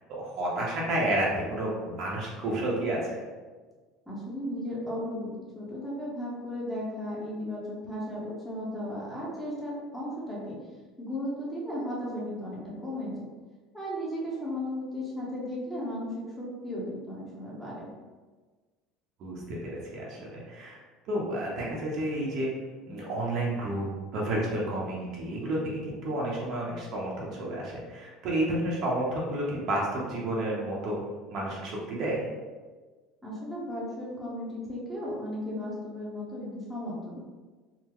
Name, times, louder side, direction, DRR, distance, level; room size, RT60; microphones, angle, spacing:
voice 1, 0.0-3.2 19.2-20.8 21.1-22.5 22.9-31.0 31.3-32.3, right 1 dB, 50° right, -3 dB, 0.8 m, -31 dB
voice 2, 4.1-5.3 5.5-10.6 11.0-13.1 13.7-16.1 16.4-17.9 33.2-37.2, left 1 dB, ahead, -7 dB, 0.8 m, -35 dB
3.7 x 2.0 x 3.0 m, 1.4 s
cardioid pair, 140°, 0 cm